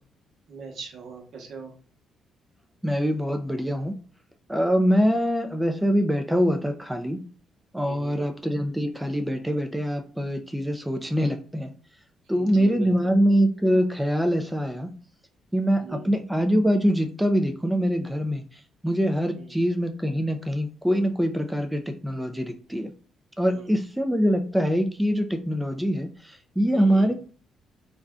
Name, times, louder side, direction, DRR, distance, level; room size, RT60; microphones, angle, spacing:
voice 1, 0.5-1.7 7.8-8.2 12.3-13.1 15.7-16.2 19.3-19.6 23.5-23.8 26.7-27.1, right 5 dB, 70° right, 2 dB, 0.8 m, -40 dB
voice 2, 2.8-3.9 4.5-7.2 7.7-11.7 12.3-14.9 15.5-18.4 18.8-22.9 23.4-27.1, equal, 5° right, 5 dB, 0.4 m, -24 dB
2.5 x 2.2 x 3.4 m, 0.41 s
cardioid pair, 90°, 0 cm